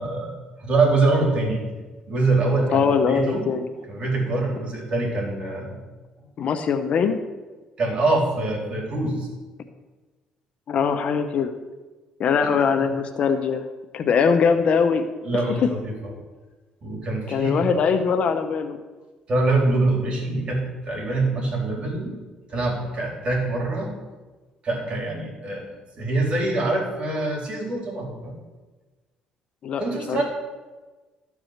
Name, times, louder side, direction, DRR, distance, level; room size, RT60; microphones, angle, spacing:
voice 1, 0.0-1.6 2.1-3.4 3.9-5.8 7.8-9.3 12.4-12.5 15.2-16.1 16.8-17.7 19.3-22.2 22.5-23.9 24.6-28.3 29.8-30.2, right 2 dB, 45° right, -1 dB, 3.7 m, -24 dB
voice 2, 2.7-3.6 6.4-7.2 10.7-11.5 12.2-13.6 13.9-15.1 15.6-15.7 17.3-18.8 29.6-30.2, left 6 dB, 55° left, 8 dB, 0.8 m, -21 dB
13.0 x 4.8 x 6.5 m, 1.3 s
cardioid pair, 95°, 3 cm